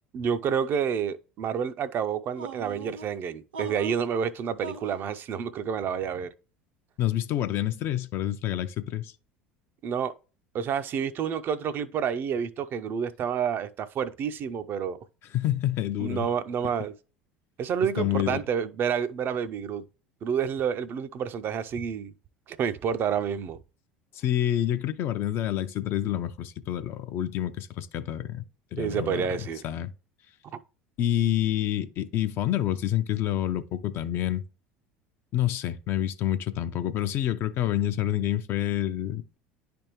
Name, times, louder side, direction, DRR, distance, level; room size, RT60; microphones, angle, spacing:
voice 1, 0.1-6.3 9.8-10.1 10.5-15.0 16.0-16.9 17.6-19.8 20.2-22.1 22.5-23.6 28.8-29.7, right 7 dB, 45° right, 0.5 m, -29 dB
sound 1, 2.3-3.1 3.5-4.1 4.6-5.1, right 3 dB, 90° right, 0.9 m, -40 dB
voice 2, 7.0-9.1 15.3-16.3 18.0-18.4 24.1-28.4 28.7-29.9 31.0-34.4 35.3-39.4, left 12 dB, 50° left, 0.5 m, -28 dB
10.0 x 3.4 x 3.0 m
hypercardioid pair, 75°, 5 cm